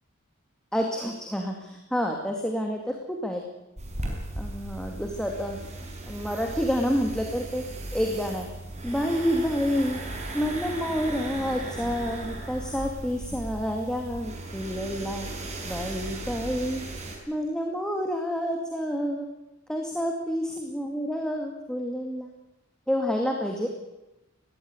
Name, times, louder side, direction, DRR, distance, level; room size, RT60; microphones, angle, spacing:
voice 1, 0.7-3.4 4.4-5.6 6.1-7.6 7.9-8.5 8.8-10.0 10.3-15.3 15.6-16.8 17.3-19.3 19.7-22.3 22.9-23.7, equal, 5° left, 2 dB, 2.3 m, -29 dB
sound 1, 3.8-17.2, right 2 dB, 35° right, 5.5 m, -37 dB
20.0 x 16.0 x 9.7 m, 0.98 s
head